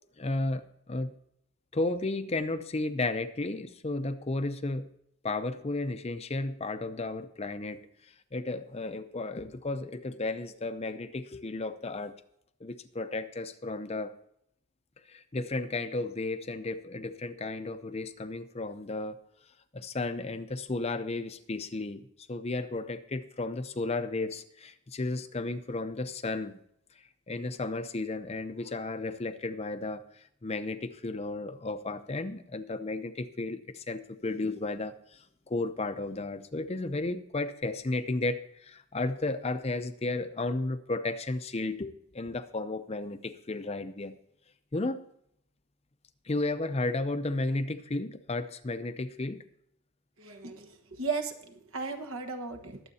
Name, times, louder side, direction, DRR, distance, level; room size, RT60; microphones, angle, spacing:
voice 1, 0.2-1.1 1.7-4.9 5.2-7.8 8.3-12.2 12.6-14.1 15.1-19.2 19.7-26.6 27.3-44.2 44.7-45.0 46.3-49.4, left 2 dB, 30° left, 10 dB, 0.6 m, -33 dB
voice 2, 50.2-52.8, right 4 dB, 70° right, 6 dB, 1.4 m, -36 dB
21.5 x 7.9 x 2.8 m, 0.74 s
head